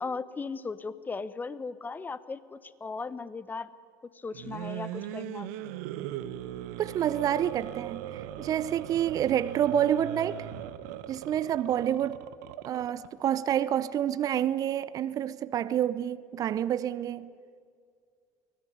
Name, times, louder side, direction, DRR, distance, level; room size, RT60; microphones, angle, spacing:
voice 1, 0.0-3.7 4.1-5.5, left 4 dB, 20° left, 1.1 m, -37 dB
sound 1, 4.3-13.1, right 12 dB, 65° right, 1.0 m, -39 dB
voice 2, 6.8-10.5 11.1-12.2 12.6-17.3, right 10 dB, 40° right, 0.7 m, -28 dB
23.5 x 17.5 x 10.0 m
hypercardioid pair, 70°, 9 cm